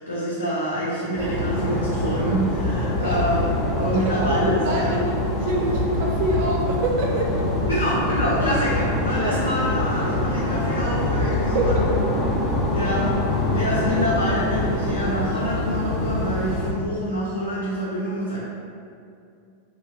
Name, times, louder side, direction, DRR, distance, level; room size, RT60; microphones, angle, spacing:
voice 1, 0.0-3.4 3.8-4.9 7.7-11.7 12.7-13.2 13.5-18.4, equal, 80° left, -7 dB, 0.3 m, -26 dB
sound 1, 1.2-16.7, left 1 dB, 25° left, 0.5 m, -24 dB
voice 2, 3.8-7.4 7.7-7.9 8.2-8.5 9.1-9.4 11.3-11.9, right 1 dB, 50° right, -1 dB, 0.4 m, -26 dB
2.7 x 2.1 x 2.3 m, 2.4 s
figure-of-eight pair, 90°, 0 cm